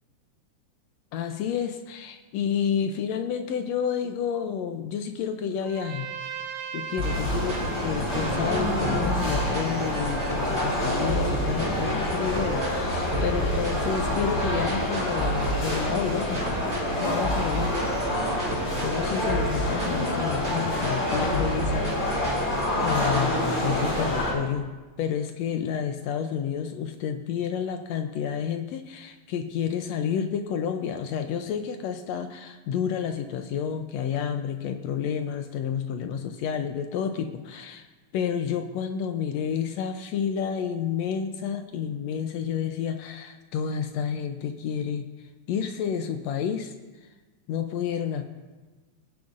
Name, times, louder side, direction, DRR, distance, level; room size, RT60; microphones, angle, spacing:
voice 1, 1.1-6.1 6.7-16.4 16.9-17.8 18.8-22.4 22.8-24.7 25.0-37.9 38.1-45.1 45.5-46.7 47.5-48.3, left 7 dB, 80° left, 7 dB, 1.5 m, -30 dB
Trumpet, 5.6-10.7, right 7 dB, 80° right, 2.3 m, -39 dB
sound 1, 7.0-24.3, left 1 dB, 35° left, 4.2 m, -27 dB
sound 2, 7.0-23.4, equal, 10° right, 2.8 m, -33 dB
21.5 x 10.0 x 2.5 m, 1.2 s
omnidirectional pair, 3.6 m